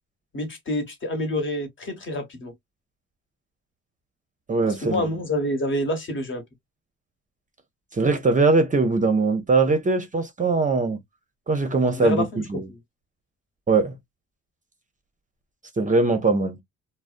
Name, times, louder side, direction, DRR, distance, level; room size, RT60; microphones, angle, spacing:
voice 1, 0.3-2.5 4.8-6.4 11.8-12.4 12.7-12.8, left 1 dB, 40° left, 1.2 m, -27 dB
voice 2, 4.5-5.1 7.9-11.0 11.5-12.7 13.7-14.0 15.8-16.6, right 3 dB, 25° right, 0.6 m, -21 dB
2.5 x 2.0 x 2.4 m
cardioid pair, 90°, 30 cm